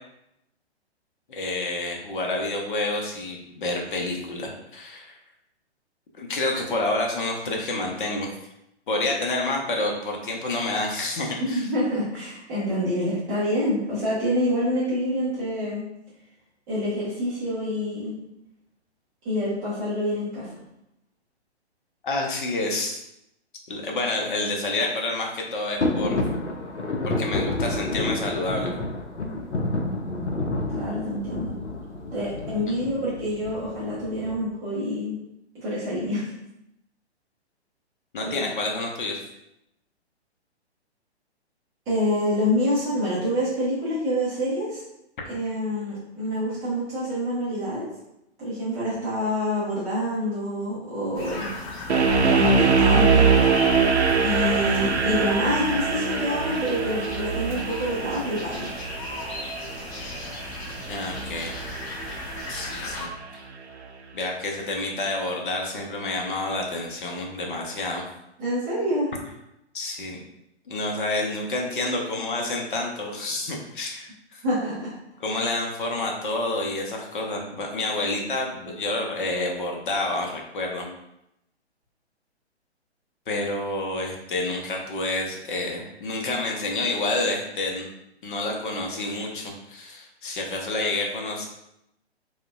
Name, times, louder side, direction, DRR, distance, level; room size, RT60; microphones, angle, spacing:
voice 1, 1.3-5.2 6.2-8.3 8.9-11.7 22.0-23.0 23.7-26.2 27.0-28.7 32.7-32.8 38.1-39.2 60.9-61.5 62.5-63.4 64.1-68.0 69.7-70.2 70.7-74.4 75.2-80.9 83.3-87.9 88.2-91.5, left 2 dB, 50° left, 0 dB, 0.7 m, -28 dB
voice 2, 11.5-15.8 16.7-18.1 19.2-20.5 30.7-31.5 32.1-35.2 35.5-36.3 38.2-38.5 41.9-44.8 45.3-47.8 48.4-51.5 52.4-53.3 53.5-53.8 54.2-58.7 68.4-69.1 74.4-74.9, equal, 10° right, -10 dB, 0.5 m, -27 dB
sound 1, 25.8-34.4, left 2 dB, 90° left, 0.6 m, -29 dB
sound 2, 51.1-63.0, left 3 dB, 30° left, 1.1 m, -36 dB
sound 3, 51.9-62.9, right 5 dB, 75° right, 0.6 m, -23 dB
4.7 x 2.2 x 2.3 m, 0.84 s
figure-of-eight pair, 125°, 34 cm